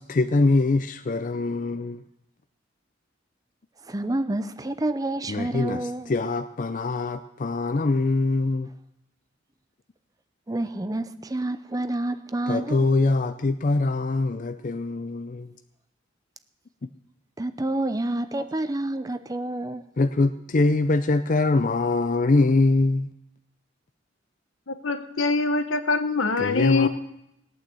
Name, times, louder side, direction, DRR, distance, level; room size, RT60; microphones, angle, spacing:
voice 1, 0.1-2.0 5.3-5.8 6.1-8.7 12.5-15.5 20.0-23.1 26.4-26.9, left 3 dB, 40° left, 0.5 m, -23 dB
voice 2, 3.8-6.2 10.5-13.2 17.4-19.9, right 1 dB, 20° right, 0.6 m, -29 dB
voice 3, 24.7-26.9, left 4 dB, 85° left, 1.2 m, -24 dB
19.0 x 8.9 x 7.7 m
head